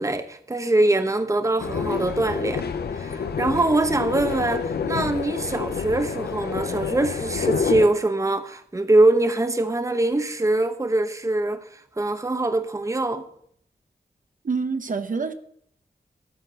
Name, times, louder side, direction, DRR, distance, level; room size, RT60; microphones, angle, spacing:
voice 1, 0.0-2.7 2.9-13.3, right 2 dB, 20° right, 0.9 m, -23 dB
sound 1, 1.6-7.9, left 6 dB, 80° left, 0.7 m, -28 dB
voice 2, 14.4-15.3, right 4 dB, 55° right, 0.9 m, -26 dB
13.0 x 4.6 x 8.0 m
cardioid pair, 55°, 17 cm